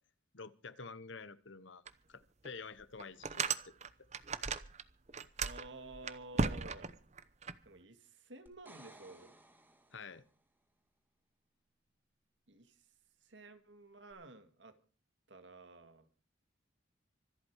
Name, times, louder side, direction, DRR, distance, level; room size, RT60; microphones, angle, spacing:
voice 1, 0.3-1.8 2.1-3.6 9.9-10.2, left 4 dB, 75° left, 1.1 m, -49 dB
sound 1, 1.9-2.0 2.4-2.5 3.0-4.8 5.1-7.5, right 4 dB, 35° right, 0.8 m, -36 dB
voice 2, 5.4-6.9 7.7-9.3 12.5-12.7 13.3-14.7 15.3-16.1, right 2 dB, 65° right, 2.0 m, -52 dB
sound 2, 8.5-10.4 14.1-14.2, right 1 dB, 10° right, 2.4 m, -59 dB
25.5 x 8.7 x 4.8 m
head